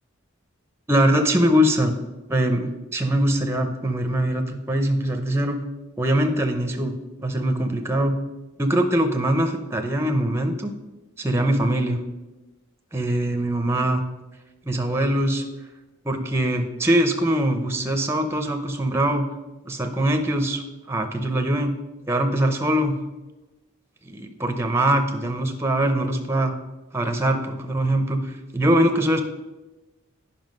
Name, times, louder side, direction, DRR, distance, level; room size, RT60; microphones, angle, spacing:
voice 1, 0.9-1.9 2.3-5.6 6.0-8.2 8.6-10.7 11.2-12.0 12.9-14.0 14.6-15.4 16.0-19.3 19.7-21.7 22.1-23.0 24.0-26.5 26.9-29.2, right 1 dB, 10° right, 5 dB, 0.6 m, -22 dB
9.3 x 5.6 x 5.2 m, 1.1 s
head